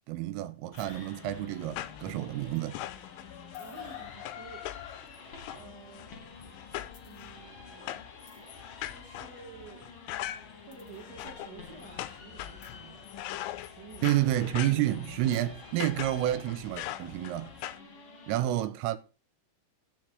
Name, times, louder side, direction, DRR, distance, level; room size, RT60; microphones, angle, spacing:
voice 1, 0.1-2.8 14.0-17.5 18.3-19.0, right 13 dB, 80° right, 3.3 m, -29 dB
sound 1, 0.7-17.8, left 14 dB, 80° left, 2.9 m, -42 dB
sound 2, 0.8-18.4, left 4 dB, 55° left, 1.6 m, -50 dB
voice 2, 3.6-6.2 7.0-8.1 8.8-13.1 13.6-14.2 18.3-18.7, right 5 dB, 55° right, 1.8 m, -51 dB
13.0 x 4.7 x 7.6 m
omnidirectional pair, 6.0 m